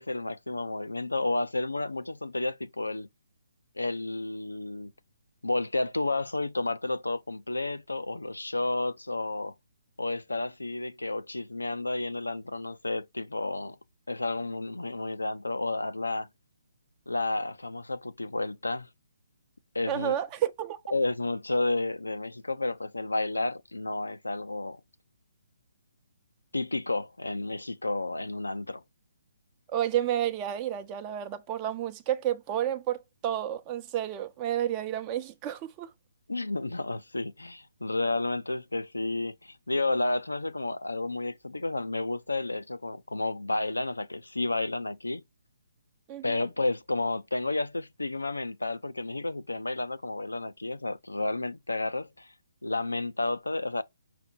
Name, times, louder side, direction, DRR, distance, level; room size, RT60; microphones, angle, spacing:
voice 1, 0.0-3.1 3.8-4.9 5.4-9.5 10.0-13.8 14.1-16.3 17.1-18.9 19.7-20.2 20.9-24.8 26.5-28.8 36.3-45.2 46.2-52.3 52.6-53.8, left 2 dB, 80° left, 0.5 m, -31 dB
voice 2, 19.9-20.8 29.7-33.0 33.2-35.9 46.1-46.4, right 11 dB, 25° right, 0.7 m, -30 dB
5.7 x 2.2 x 3.9 m
figure-of-eight pair, 135°, 0 cm